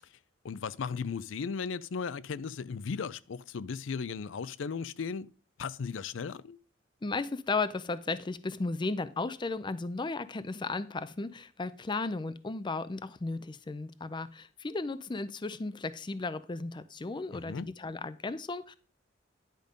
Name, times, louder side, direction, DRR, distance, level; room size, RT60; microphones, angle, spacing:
voice 1, 0.4-5.3 5.6-6.6 17.3-17.7, left 5 dB, 80° left, 0.5 m, -36 dB
voice 2, 7.0-18.8, left 3 dB, 25° left, 0.5 m, -35 dB
10.5 x 5.3 x 5.1 m
head